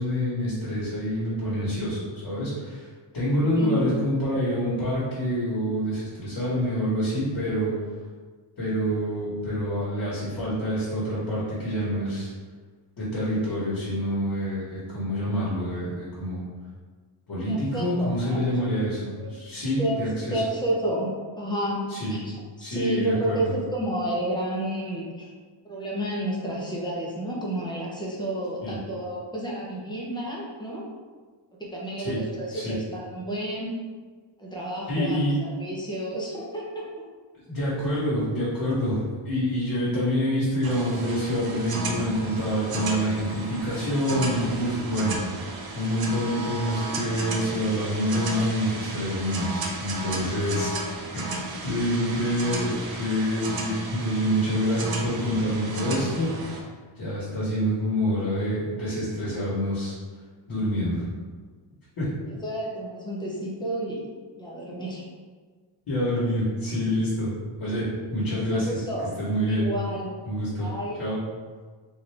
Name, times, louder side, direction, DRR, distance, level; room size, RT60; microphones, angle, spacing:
voice 1, 0.0-2.9 3.1-7.7 8.6-12.3 13.0-16.4 17.3-20.4 21.9-22.1 22.6-23.5 28.6-28.8 32.0-32.2 32.5-32.7 34.9-35.4 37.5-45.2 45.7-50.8 51.1-56.6 57.0-60.0 60.5-61.1 62.0-62.1 65.9-67.3 67.6-68.8 69.2-69.7 70.2-70.7 71.0-71.2, equal, 55° left, -9 dB, 1.4 m, -27 dB
voice 2, 3.4-3.8 17.5-18.5 19.2-19.3 19.8-20.0 20.3-21.1 21.4-22.2 22.6-25.3 25.6-30.9 31.6-33.7 34.4-36.9 62.3-64.1 64.4-65.0 68.3-69.1 69.5-70.1 70.6-71.0, right 1 dB, 10° left, -5 dB, 0.7 m, -31 dB
sound 1, 40.6-56.6, right 2 dB, 55° right, 0.5 m, -34 dB
3.7 x 2.6 x 3.3 m, 1.5 s
wide cardioid pair, 155°, 47 cm